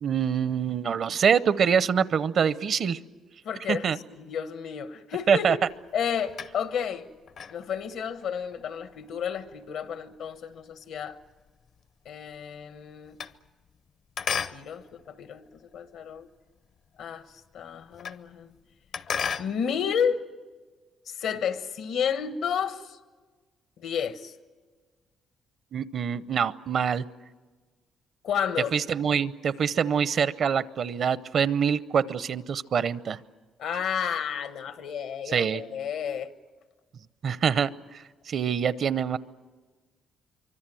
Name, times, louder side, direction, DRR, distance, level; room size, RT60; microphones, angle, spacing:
voice 1, 0.0-3.0 3.7-4.0 5.3-5.6 25.7-27.0 28.7-33.2 35.3-35.6 37.2-39.2, right 7 dB, 60° right, 0.7 m, -25 dB
voice 2, 3.4-3.9 4.2-5.6 5.9-7.1 7.5-11.2 12.0-13.2 14.5-16.3 17.0-17.3 17.5-18.5 19.4-20.2 21.1-23.0 23.8-24.3 28.2-28.7 33.6-36.3, left 7 dB, 80° left, 1.2 m, -31 dB
sound 1, 5.7-6.9 7.3-11.8 12.1-13.9 14.2-16.2 16.6-16.7 17.0-17.1 17.3-18.3 18.6-19.6, left 6 dB, 60° left, 0.7 m, -36 dB
25.0 x 24.5 x 7.7 m
cardioid pair, 90°, 0 cm